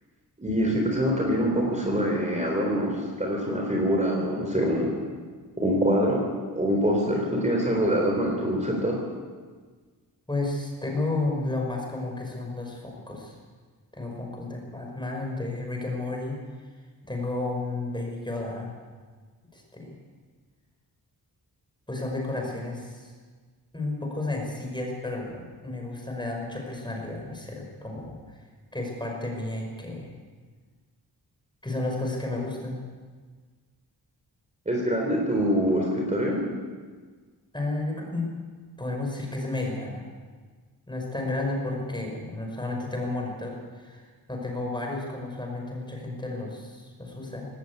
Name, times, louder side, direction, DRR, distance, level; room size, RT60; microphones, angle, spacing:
voice 1, 0.4-4.9 5.6-6.2 6.6-9.0 34.7-36.4, equal, 20° right, -1 dB, 3.9 m, -24 dB
voice 2, 10.3-13.4 13.9-16.4 17.1-18.7 19.5-20.0 21.9-23.1 23.7-28.4 28.7-30.1 31.6-32.8 37.5-38.3 38.8-40.0 40.9-47.5, left 2 dB, 10° left, 0 dB, 5.6 m, -32 dB
19.0 x 18.0 x 8.4 m, 1.5 s
wide cardioid pair, 140°, 39 cm